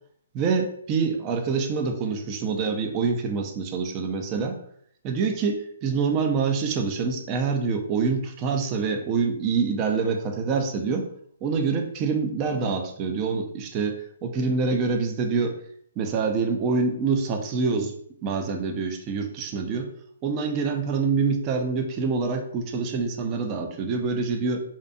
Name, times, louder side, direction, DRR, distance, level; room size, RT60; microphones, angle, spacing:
voice 1, 0.3-4.6 5.0-11.1 11.4-15.6 16.0-17.9 18.2-19.9 20.2-24.6, right 5 dB, 25° right, 4 dB, 0.3 m, -26 dB
2.6 x 2.2 x 2.5 m, 0.66 s
hypercardioid pair, 160°, 0 cm